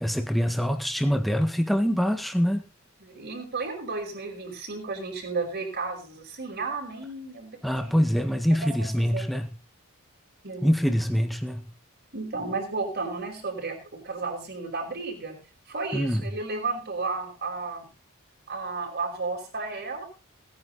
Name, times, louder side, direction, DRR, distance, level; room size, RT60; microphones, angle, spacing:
voice 1, 0.0-2.6 7.6-9.5 10.6-11.7 15.9-16.3, equal, ahead, 6 dB, 1.6 m, -24 dB
voice 2, 3.0-7.5 7.8-7.9 8.8-9.3 10.4-10.7 12.1-15.4 15.7-17.9 18.5-20.1, right 3 dB, 50° right, 2 dB, 5.2 m, -33 dB
18.0 x 9.7 x 4.1 m, 0.32 s
head